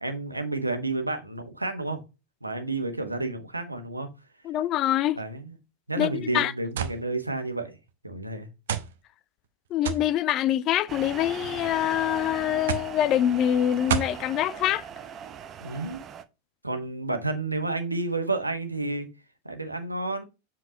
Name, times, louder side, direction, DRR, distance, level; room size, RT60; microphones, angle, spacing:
voice 1, 0.0-2.0 2.4-4.1 5.2-5.6 5.9-7.8 8.0-8.5 15.6-16.0 16.6-19.1 19.4-20.2, right 2 dB, 85° right, 1.2 m, -30 dB
voice 2, 4.4-5.2 6.0-6.5 9.7-14.8, left 11 dB, 35° left, 0.4 m, -25 dB
sound 1, 6.8-7.0 7.9-8.0 8.7-8.9 9.8-10.1 11.1-11.5 12.7-13.0 13.9-14.2, right 8 dB, 60° right, 0.8 m, -29 dB
sound 2, 10.9-16.2, right 8 dB, 30° right, 0.6 m, -40 dB
7.5 x 4.5 x 2.9 m
figure-of-eight pair, 90°, 0 cm